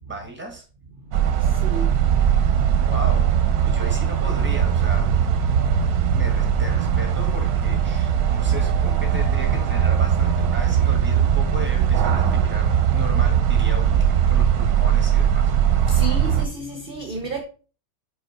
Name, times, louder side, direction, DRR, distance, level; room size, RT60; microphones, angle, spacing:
voice 1, 0.1-0.6 2.9-3.3 3.6-5.1 6.1-15.5, right 1 dB, 5° right, 1.2 m, -36 dB
sound 1, 1.1-16.5, right 8 dB, 65° right, 1.1 m, -20 dB
voice 2, 15.9-17.4, right 2 dB, 45° right, 0.7 m, -31 dB
5.4 x 5.0 x 4.3 m
omnidirectional pair, 1.9 m